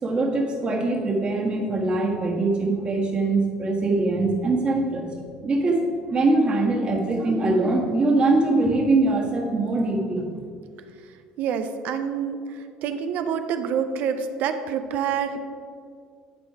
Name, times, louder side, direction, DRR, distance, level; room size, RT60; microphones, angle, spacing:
voice 1, 0.0-5.1 5.4-5.8 6.1-10.3, right 2 dB, 35° right, 0 dB, 1.7 m, -22 dB
voice 2, 11.4-12.4 12.8-15.4, right 7 dB, 60° right, 8 dB, 0.6 m, -27 dB
11.0 x 4.4 x 4.8 m, 2.2 s
supercardioid pair, 105°, 3 cm